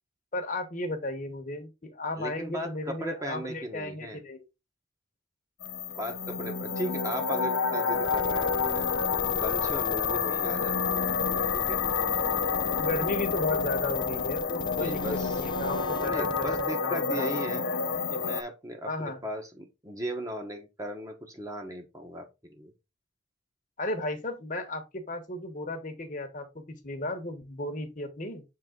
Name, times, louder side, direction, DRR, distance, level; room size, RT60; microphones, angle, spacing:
voice 1, 0.3-4.4 12.8-18.0 18.9-19.2 23.8-28.4, left 2 dB, 40° left, 1.2 m, -35 dB
voice 2, 2.2-4.2 6.0-8.9 9.3-11.8 14.6-15.3 16.0-17.7 18.1-22.7, equal, 15° right, 1.3 m, -37 dB
sound 1, 5.6-18.4, left 5 dB, 80° left, 0.6 m, -29 dB
sound 2, 8.0-16.7, left 2 dB, 25° left, 0.4 m, -42 dB
6.9 x 3.6 x 3.8 m
head